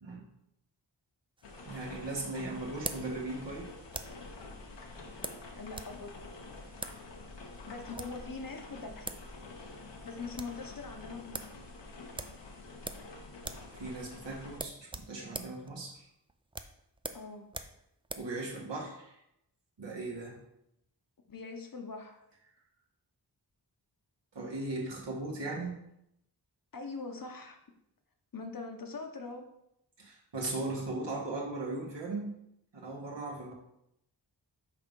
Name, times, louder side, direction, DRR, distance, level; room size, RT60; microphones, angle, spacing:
sound 1, 1.4-14.6, left 3 dB, 85° left, 1.0 m, -48 dB
sound 2, 1.4-4.3 5.2-6.0 6.2-6.3 6.7-7.0 7.8-8.2 8.8-8.9 9.0-9.3 9.6-9.7 10.0-10.6 11.0-11.1 11.3-11.6 12.1-13.1 13.4-13.7 14.0-14.1 14.5-18.3, right 2 dB, 15° right, 0.3 m, -42 dB
voice 1, 1.6-3.7 13.7-16.0 18.2-19.2 19.8-20.4 24.3-25.7 30.0-32.3 32.7-33.5, right 2 dB, 85° right, -3 dB, 1.5 m, -38 dB
voice 2, 5.6-6.2 7.7-9.1 10.0-11.5 17.1-17.5 21.3-22.2 26.7-27.6 28.3-29.5, left 4 dB, 50° left, 5 dB, 0.9 m, -42 dB
5.8 x 3.5 x 5.3 m, 0.80 s
wide cardioid pair, 95°, 42 cm